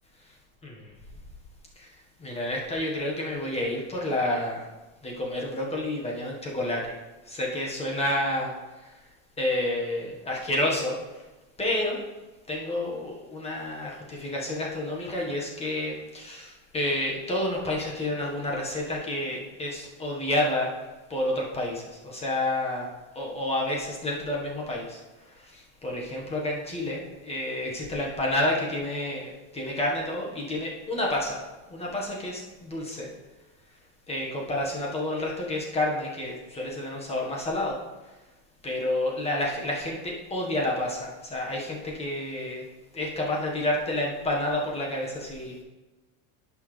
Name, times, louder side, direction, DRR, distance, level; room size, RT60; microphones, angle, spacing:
voice 1, 0.6-0.9 1.8-4.7 5.0-7.0 7.2-9.0 9.4-11.2 11.6-12.0 12.5-20.7 21.1-31.4 31.7-33.1 34.1-37.8 38.0-38.2 38.6-42.7 42.9-45.6, left 1 dB, 15° left, -2 dB, 1.4 m, -30 dB
10.5 x 6.2 x 3.3 m, 1.2 s
cardioid pair, 150°, 40 cm